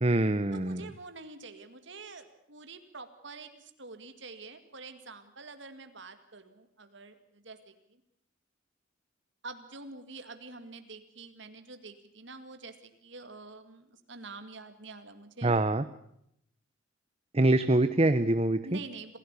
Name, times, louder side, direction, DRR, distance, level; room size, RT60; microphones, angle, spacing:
voice 1, 0.0-0.9 15.4-15.8 17.3-18.8, right 2 dB, 30° right, 11 dB, 0.8 m, -25 dB
voice 2, 0.5-8.0 9.4-15.6 18.6-19.2, right 3 dB, 60° right, 9 dB, 2.2 m, -47 dB
27.0 x 16.5 x 8.3 m, 0.75 s
head